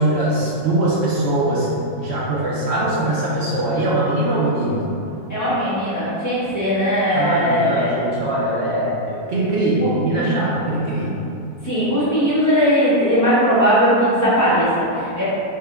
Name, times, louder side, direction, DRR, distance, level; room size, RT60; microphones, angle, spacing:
voice 1, 0.0-1.7 2.0-4.9 7.1-11.1, right 1 dB, 60° right, -7 dB, 0.7 m, -21 dB
voice 2, 5.3-7.9 9.8-10.3 11.6-15.2, equal, 20° left, -14 dB, 0.4 m, -19 dB
4.3 x 2.2 x 3.5 m, 2.7 s
omnidirectional pair, 1.6 m